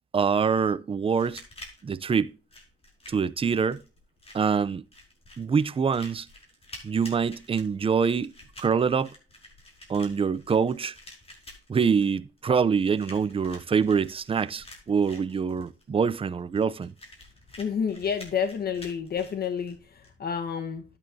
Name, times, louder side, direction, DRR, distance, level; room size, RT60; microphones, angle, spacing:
voice 1, 0.1-1.4 1.8-2.3 3.1-3.8 4.3-4.8 5.4-6.3 6.8-8.3 8.6-9.1 9.9-10.9 11.7-16.9, right 6 dB, 25° right, 0.6 m, -25 dB
sound 1, 1.1-20.1, left 1 dB, 30° left, 5.5 m, -50 dB
voice 2, 17.6-20.8, left 7 dB, 50° left, 1.3 m, -29 dB
12.5 x 9.0 x 2.7 m
cardioid pair, 90°, 20 cm